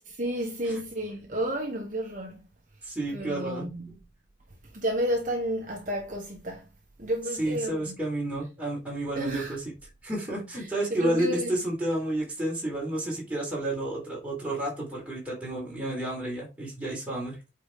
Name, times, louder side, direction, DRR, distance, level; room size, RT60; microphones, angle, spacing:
voice 1, 0.2-2.4 3.1-4.0 4.7-6.7 7.0-8.0 9.1-9.6 10.6-11.5, right 1 dB, 45° right, 1.2 m, -31 dB
voice 2, 2.8-3.6 7.4-9.6 10.0-17.4, right 1 dB, 5° right, 3.8 m, -31 dB
8.7 x 4.4 x 3.7 m
head